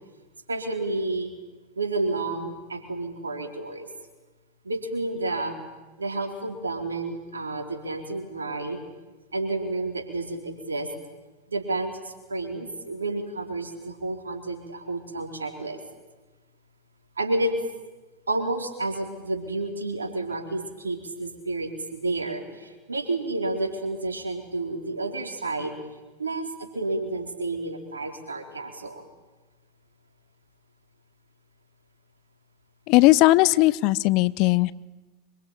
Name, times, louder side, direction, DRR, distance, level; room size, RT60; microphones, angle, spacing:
voice 1, 0.5-1.3 1.8-3.9 4.6-5.5 6.0-8.8 9.3-10.9 11.5-15.8 17.2-17.6 18.3-25.7 26.2-26.5 26.7-29.1, right 2 dB, 90° right, 4 dB, 4.1 m, -30 dB
voice 2, 32.9-34.7, left 19 dB, 50° left, 20 dB, 0.8 m, -18 dB
25.5 x 23.5 x 9.0 m, 1.2 s
hypercardioid pair, 90°, 0 cm